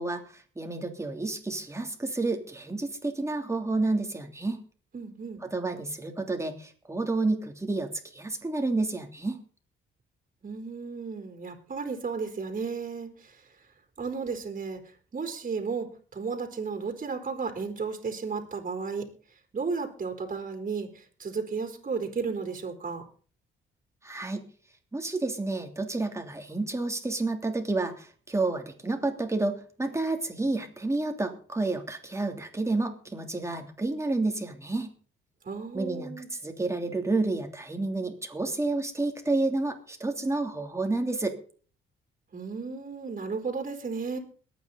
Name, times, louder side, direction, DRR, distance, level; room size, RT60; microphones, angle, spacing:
voice 1, 0.0-4.6 5.4-9.4 24.0-24.4 24.9-34.9 35.7-36.1 36.4-41.4, right 2 dB, 15° right, 4 dB, 3.2 m, -30 dB
voice 2, 4.9-5.4 10.4-13.4 14.0-14.8 15.1-19.1 19.5-23.0 35.4-36.3 42.3-44.2, right 5 dB, 40° right, 4 dB, 3.8 m, -34 dB
22.0 x 9.3 x 4.1 m, 0.42 s
cardioid pair, 75°, 21 cm